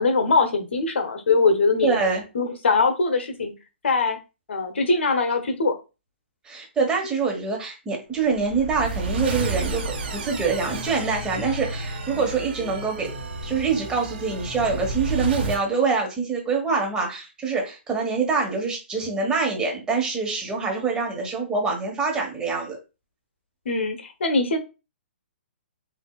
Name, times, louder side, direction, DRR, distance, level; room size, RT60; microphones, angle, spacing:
voice 1, 0.0-2.0 2.3-3.5 3.8-4.2 4.5-5.8 23.6-24.6, left 3 dB, 75° left, 6 dB, 1.1 m, -22 dB
voice 2, 1.8-2.2 6.4-13.1 13.4-22.8, right 4 dB, 10° right, 0 dB, 1.3 m, -25 dB
sound 1, 8.2-15.6, right 2 dB, 65° right, 1.4 m, -31 dB
6.3 x 2.7 x 2.4 m, 0.28 s
hypercardioid pair, 140°, 6 cm